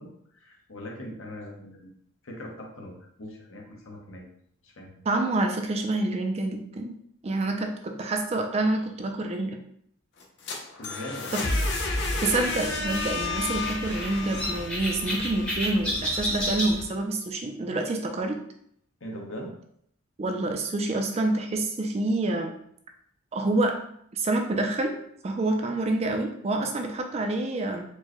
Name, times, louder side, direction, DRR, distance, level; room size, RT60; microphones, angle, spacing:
voice 1, 0.0-1.9 2.2-4.3 4.6-4.9 10.8-11.4 19.0-19.5, left 1 dB, 75° left, -1 dB, 0.9 m, -40 dB
voice 2, 5.1-6.9 7.2-9.6 11.3-11.4 12.2-18.4 20.2-22.5 23.3-23.8 24.1-24.9 25.2-27.8, right 2 dB, 30° right, 4 dB, 0.4 m, -27 dB
sound 1, 10.2-16.1, left 2 dB, 55° left, 0.6 m, -31 dB
sound 2, 11.6-16.8, equal, 5° left, 0.7 m, -32 dB
4.4 x 2.2 x 3.0 m, 0.69 s
head